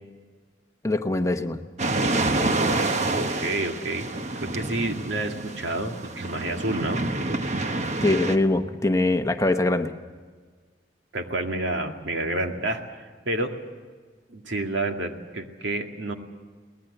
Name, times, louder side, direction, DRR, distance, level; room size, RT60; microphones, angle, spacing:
voice 1, 0.8-1.6 8.0-9.9, left 2 dB, 15° left, 7 dB, 0.9 m, -23 dB
sound 1, 1.8-8.4, right 2 dB, 40° right, 1.1 m, -27 dB
voice 2, 3.2-4.1 4.4-7.1 11.1-13.5 14.3-16.1, right 2 dB, 90° right, 4 dB, 2.1 m, -29 dB
22.5 x 19.0 x 7.9 m, 1.5 s
head